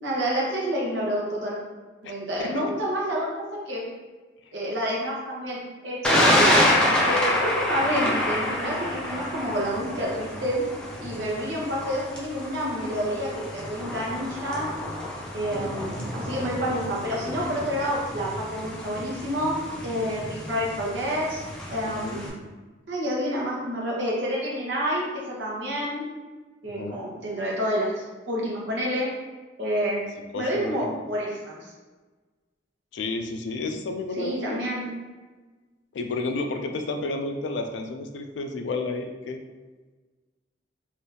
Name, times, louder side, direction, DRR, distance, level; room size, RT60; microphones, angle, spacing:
voice 1, 0.0-1.6 2.0-3.3 3.7-3.8 4.5-6.7 7.0-10.6 11.0-14.7 15.3-19.6 19.8-21.4 21.7-22.3 22.9-26.0 26.6-29.1 29.6-30.0 30.3-31.7 34.2-34.9, equal, 80° right, -4 dB, 0.9 m, -28 dB
Thunder, 6.0-22.3, left 1 dB, 5° left, 0.5 m, -28 dB
voice 2, 21.8-22.3 26.6-27.0 30.3-30.9 32.9-34.6 35.9-39.4, left 3 dB, 80° left, 5 dB, 0.4 m, -31 dB
3.3 x 2.6 x 2.7 m, 1.3 s
head